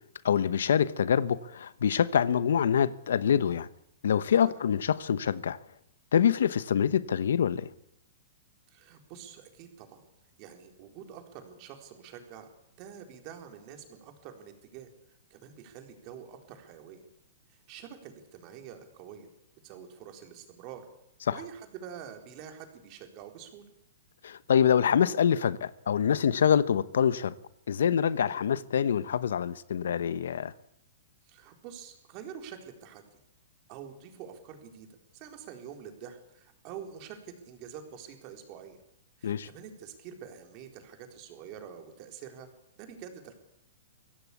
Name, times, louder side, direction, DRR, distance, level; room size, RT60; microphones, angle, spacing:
voice 1, 0.2-3.7 4.0-5.6 6.1-7.7 21.3-21.4 24.2-27.3 27.7-30.5 39.2-39.5, left 8 dB, 80° left, 1.1 m, -25 dB
voice 2, 8.7-10.0 10.4-12.5 12.8-14.9 15.3-17.1 17.5-19.3 19.6-20.9 21.3-23.7 28.2-28.4 31.3-33.0 33.7-34.9 35.1-38.8 39.2-42.5 42.8-43.3, right 8 dB, 35° right, 4.1 m, -46 dB
23.5 x 16.5 x 8.5 m
hypercardioid pair, 155°, 0 cm